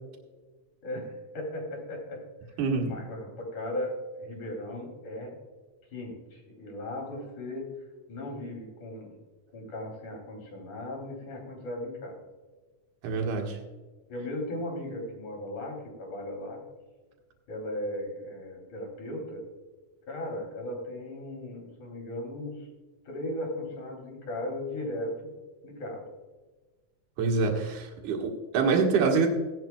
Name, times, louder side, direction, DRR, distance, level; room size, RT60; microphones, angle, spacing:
voice 1, 0.8-2.6 2.8-5.4 5.9-7.7 8.1-9.2 9.5-12.2 14.1-16.6 17.5-19.4 20.1-22.7 23.1-25.3 25.6-26.1, left 1 dB, 70° left, 0 dB, 4.8 m, -37 dB
voice 2, 2.6-3.0 13.0-13.6 27.2-29.3, right 4 dB, 75° right, 1 dB, 3.0 m, -26 dB
17.5 x 11.0 x 2.3 m, 1.3 s
omnidirectional pair, 3.5 m